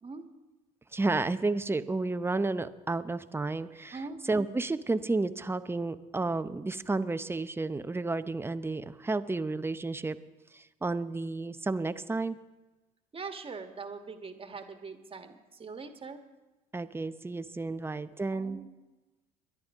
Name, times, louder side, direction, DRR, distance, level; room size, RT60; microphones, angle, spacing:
voice 1, 0.9-4.0 4.3-10.2 10.5-12.4 16.7-18.6, right 3 dB, 10° right, 12 dB, 0.7 m, -31 dB
voice 2, 13.1-16.2 18.3-18.7, right 4 dB, 30° right, 7 dB, 1.6 m, -42 dB
23.0 x 11.0 x 3.6 m, 1.1 s
hypercardioid pair, 70°, 19 cm